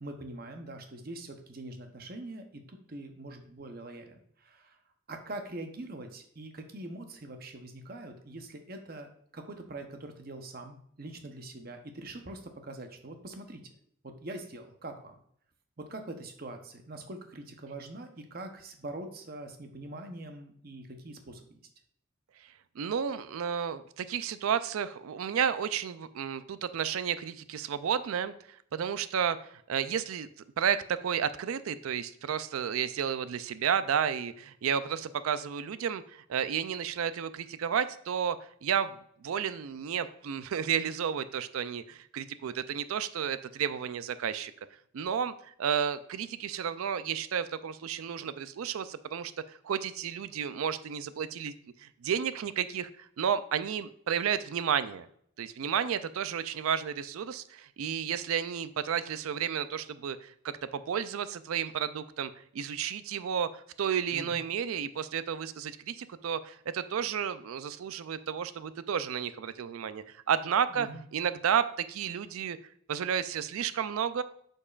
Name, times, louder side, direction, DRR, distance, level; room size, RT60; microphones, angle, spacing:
voice 1, 0.0-4.8 5.1-13.6 14.0-15.1 15.8-21.6 64.1-64.4 70.7-71.0, right 2 dB, 45° right, 5 dB, 0.8 m, -43 dB
voice 2, 22.8-28.3 28.7-30.3 30.6-38.4 38.6-44.5 44.9-51.5 51.8-55.1 55.4-72.6 72.9-74.2, right 8 dB, 85° right, 13 dB, 0.4 m, -32 dB
8.3 x 5.3 x 2.4 m, 0.66 s
head